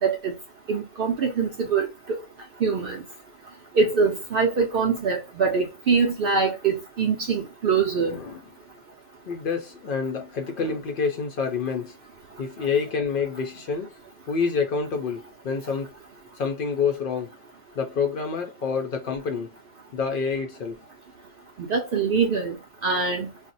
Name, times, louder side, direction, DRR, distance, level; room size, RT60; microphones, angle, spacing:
voice 1, 0.0-0.3 0.7-2.2 2.6-3.0 3.8-8.2 21.7-22.5 22.8-23.3, right 5 dB, 65° right, 0.5 m, -23 dB
voice 2, 8.0-8.4 9.3-12.0 12.4-13.9 14.3-15.9 16.4-17.3 17.8-19.5 19.9-20.8, left 5 dB, 65° left, 0.5 m, -27 dB
2.4 x 2.1 x 3.9 m
omnidirectional pair, 1.4 m